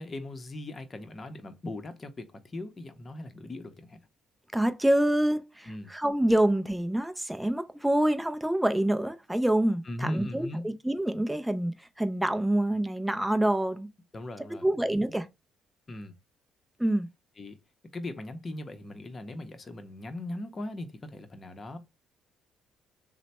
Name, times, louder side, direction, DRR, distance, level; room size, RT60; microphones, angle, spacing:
voice 1, 0.0-4.0 5.7-5.9 9.8-10.6 14.1-15.0 15.9-16.1 17.4-17.6 17.9-21.8, left 1 dB, 30° left, 0.7 m, -39 dB
voice 2, 4.5-13.9 14.6-15.3 16.8-17.1, right 1 dB, 5° right, 0.5 m, -26 dB
3.2 x 2.1 x 4.1 m
cardioid pair, 100°, 0 cm